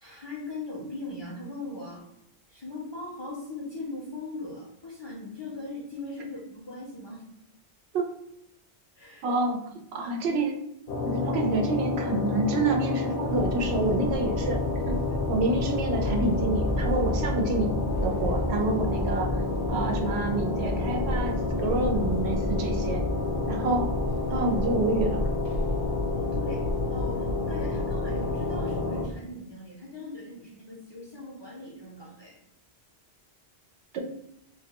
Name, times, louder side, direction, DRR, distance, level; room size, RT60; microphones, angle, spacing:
voice 1, 0.0-2.0 2.5-7.2 9.0-9.3 26.1-32.4, left 2 dB, 40° left, -5 dB, 0.4 m, -39 dB
voice 2, 9.2-10.6 11.0-14.6 14.9-15.0 15.3-17.7 18.0-23.0 23.5-23.9 24.3-25.3 33.9-34.0, right 2 dB, 85° right, 3 dB, 0.8 m, -28 dB
sound 1, 10.9-29.1, left 3 dB, 70° left, 0.8 m, -30 dB
sound 2, 13.2-29.2, equal, 50° right, 0.6 m, -32 dB
2.2 x 2.1 x 2.8 m, 0.77 s
omnidirectional pair, 1.1 m